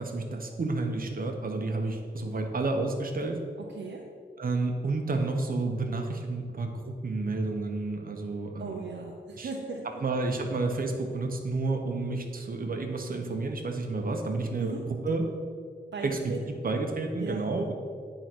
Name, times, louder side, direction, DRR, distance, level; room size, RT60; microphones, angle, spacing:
voice 1, 0.0-3.4 4.4-8.8 9.4-9.5 10.0-14.7 15.0-15.2 16.0-16.2 16.5-17.7, right 3 dB, 55° right, 3 dB, 1.0 m, -30 dB
voice 2, 3.7-4.0 8.6-9.8 14.6-14.8 15.9-16.4 17.2-17.5, right 4 dB, 90° right, -1 dB, 0.7 m, -37 dB
9.5 x 3.9 x 6.0 m, 2.1 s
wide cardioid pair, 105°, 18 cm